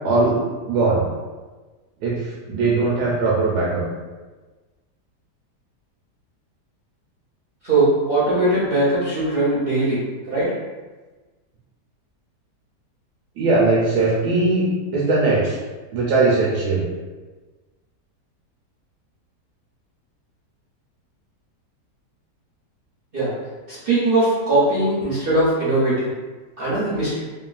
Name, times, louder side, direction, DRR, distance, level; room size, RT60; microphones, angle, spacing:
voice 1, 0.0-0.4 0.7-1.0 2.0-3.8 13.4-15.6 15.9-16.8, right 3 dB, 75° right, -5 dB, 1.2 m, -20 dB
voice 2, 7.6-10.0 10.3-10.5 23.1-23.3 23.7-26.1 26.6-27.2, right 2 dB, 55° right, -9 dB, 0.6 m, -20 dB
3.0 x 2.2 x 2.4 m, 1.3 s
omnidirectional pair, 1.8 m